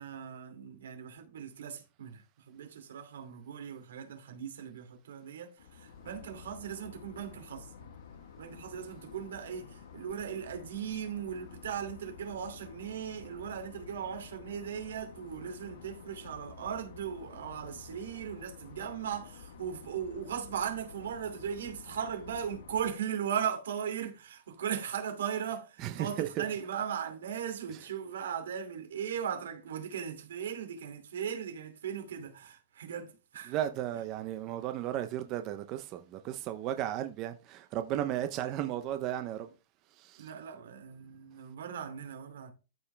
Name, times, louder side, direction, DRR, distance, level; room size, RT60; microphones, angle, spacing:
voice 1, 0.0-7.9 8.4-33.5 40.2-42.5, right 8 dB, 90° right, 2.7 m, -38 dB
sound 1, 5.6-22.9, left 7 dB, 85° left, 1.4 m, -51 dB
voice 2, 25.8-26.5 27.7-27.9 33.4-39.5 39.9-40.3, right 12 dB, 25° right, 0.6 m, -35 dB
13.5 x 5.3 x 3.4 m
supercardioid pair, 170°, 0 cm